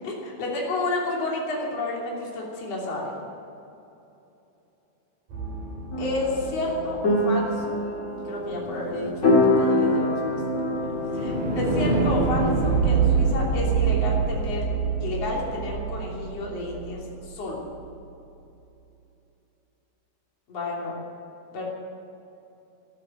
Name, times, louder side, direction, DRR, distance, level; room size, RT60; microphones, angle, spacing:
voice 1, 0.0-3.1 6.0-7.8 8.3-10.4 11.1-14.7 15.0-17.0 17.3-17.6 20.5-21.0 21.5-21.6, left 2 dB, 50° left, -3 dB, 4.1 m, -31 dB
sound 1, 5.3-7.5 9.3-17.3, right 5 dB, 75° right, 4.9 m, -26 dB
sound 2, 5.9-15.6, left 1 dB, 30° left, 1.7 m, -27 dB
13.5 x 12.0 x 8.9 m, 2.9 s
omnidirectional pair, 3.9 m